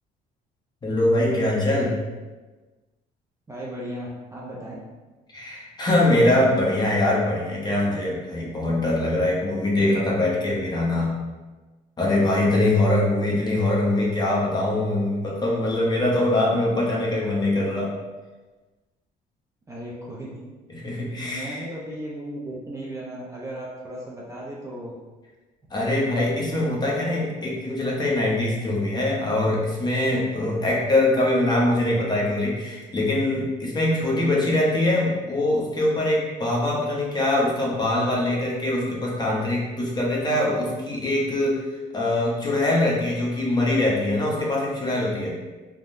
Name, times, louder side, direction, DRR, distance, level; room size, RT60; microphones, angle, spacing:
voice 1, 0.8-2.0 5.3-11.1 12.0-17.9 20.7-21.6 25.7-45.3, left 1 dB, 25° left, -4 dB, 0.8 m, -23 dB
voice 2, 3.5-4.7 19.7-20.3 21.1-24.9 25.8-26.1, right 1 dB, 20° right, -5 dB, 0.5 m, -36 dB
3.5 x 2.1 x 2.5 m, 1.2 s
cardioid pair, 110°, 17 cm